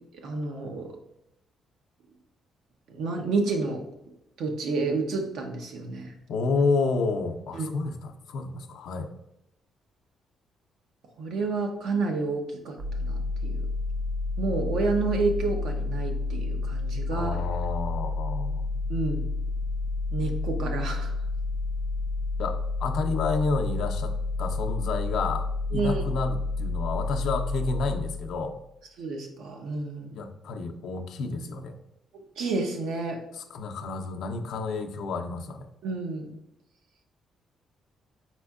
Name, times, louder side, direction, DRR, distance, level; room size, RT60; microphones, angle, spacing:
voice 1, 0.2-0.9 2.9-3.8 4.4-6.2 7.5-7.7 11.2-13.6 14.4-17.5 18.9-19.3 20.1-21.1 25.7-26.0 29.0-30.2 32.1-33.2 35.8-36.3, right 3 dB, 80° right, 3 dB, 0.8 m, -30 dB
voice 2, 6.3-9.1 17.1-18.8 22.4-24.1 24.4-25.5 25.7-28.6 30.1-31.8 33.3-35.6, left 4 dB, 75° left, 4 dB, 0.5 m, -30 dB
sound 1, 12.8-28.6, left 3 dB, 50° right, 0.4 m, -30 dB
4.3 x 4.3 x 2.4 m, 0.83 s
cardioid pair, 90°, 0 cm